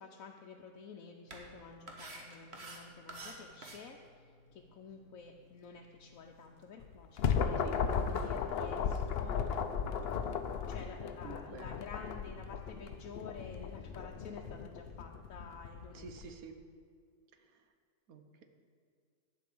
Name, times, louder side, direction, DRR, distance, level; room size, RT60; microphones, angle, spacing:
voice 1, 0.0-7.6 8.1-10.3 10.7-16.4, left 5 dB, 70° left, 1 dB, 1.1 m, -51 dB
sound 1, 1.3-9.8, right 2 dB, 50° right, 1.5 m, -54 dB
sound 2, 6.8-16.3, left 6 dB, 55° left, 0.7 m, -36 dB
voice 2, 11.2-11.8 15.9-16.6 18.1-18.4, right 5 dB, 80° right, 7 dB, 1.4 m, -49 dB
11.5 x 5.3 x 8.5 m, 2.1 s
omnidirectional pair, 1.5 m